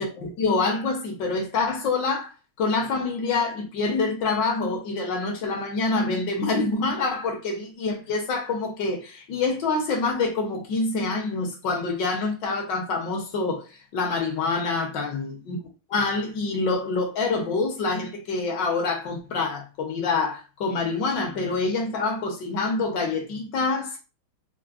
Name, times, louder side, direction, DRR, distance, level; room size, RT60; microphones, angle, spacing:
voice 1, 0.0-2.3 2.6-13.6 13.9-15.6 15.9-24.0, left 3 dB, 65° left, 1.4 m, -26 dB
4.6 x 2.0 x 2.4 m
omnidirectional pair, 2.2 m